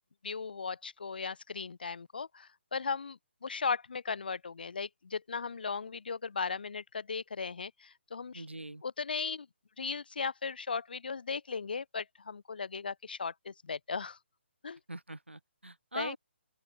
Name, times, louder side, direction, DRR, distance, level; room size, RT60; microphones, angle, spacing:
voice 1, 0.2-8.5 8.8-9.5 9.8-14.2 14.6-14.8 15.9-16.2, left 5 dB, 55° left, 3.1 m, -37 dB
voice 2, 8.3-8.8 14.9-16.2, right 2 dB, 80° right, 1.3 m, -42 dB
open air
figure-of-eight pair, 140°, 6 cm